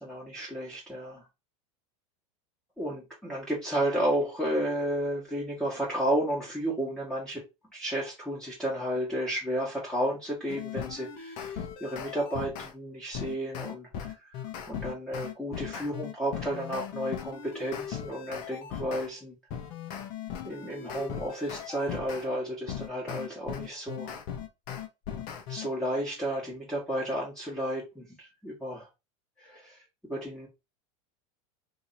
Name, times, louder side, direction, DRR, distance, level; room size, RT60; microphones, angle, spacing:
voice 1, 0.0-1.2 2.8-7.4 7.7-14.1 14.7-19.3 20.4-24.1 25.5-28.9 29.4-29.8 30.1-30.5, right 1 dB, 5° left, -6 dB, 1.4 m, -32 dB
sound 1, 10.5-12.7 13.1-19.1 19.5-22.3 22.7-25.7, left 8 dB, 50° left, 0.9 m, -38 dB
2.9 x 2.7 x 4.0 m, 0.25 s
supercardioid pair, 120°, 18 cm